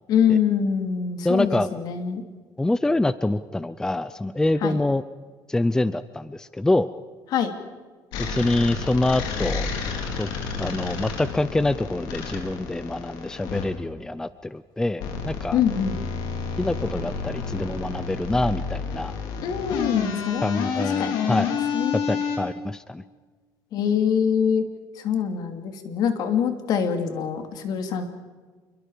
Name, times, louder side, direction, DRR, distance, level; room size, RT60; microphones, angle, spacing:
voice 1, 0.1-2.2 4.6-4.8 7.3-7.5 15.5-16.0 19.4-20.7 21.0-21.4 21.7-22.0 23.7-24.6 25.0-28.0, left 7 dB, 60° left, 6 dB, 3.0 m, -24 dB
voice 2, 1.2-1.7 2.6-5.0 5.5-6.9 8.2-9.7 10.1-10.3 10.6-15.6 16.6-19.1 20.4-21.5 21.9-23.0, left 2 dB, 10° left, 15 dB, 0.6 m, -25 dB
sound 1, 8.1-13.7 15.0-22.4, left 6 dB, 80° left, 4.7 m, -30 dB
28.0 x 23.0 x 5.1 m, 1.4 s
cardioid pair, 140°, 8 cm